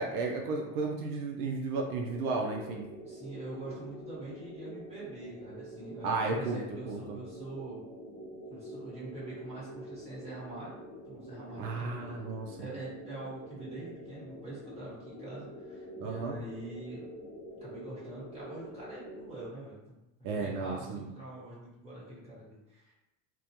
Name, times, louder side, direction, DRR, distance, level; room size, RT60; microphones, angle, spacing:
voice 1, 0.0-2.8 6.0-6.6 6.9-7.2 11.6-12.7 16.0-16.4 20.2-21.0, right 3 dB, 80° right, 1 dB, 0.6 m, -33 dB
sound 1, 1.8-19.5, equal, 15° left, 0.4 m, -47 dB
voice 2, 3.0-7.8 8.5-10.8 11.1-12.3 12.6-17.1 17.6-22.9, right 2 dB, 15° right, -9 dB, 1.3 m, -44 dB
2.4 x 2.1 x 2.8 m, 0.94 s
supercardioid pair, 125°, 43 cm